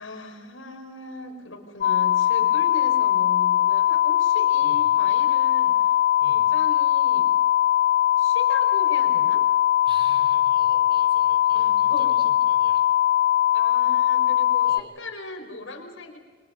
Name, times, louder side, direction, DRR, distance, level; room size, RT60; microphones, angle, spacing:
voice 1, 0.0-6.0 6.3-7.3 8.2-9.5 11.5-12.2 13.5-16.2, left 2 dB, 85° left, 3 dB, 5.3 m, -38 dB
sound 1, 1.8-14.8, left 12 dB, 50° left, 0.6 m, -20 dB
voice 2, 4.6-5.0 6.2-6.5 9.8-12.9 14.6-15.0, right 1 dB, 25° right, 2 dB, 4.8 m, -47 dB
30.0 x 25.0 x 5.5 m, 1.4 s
head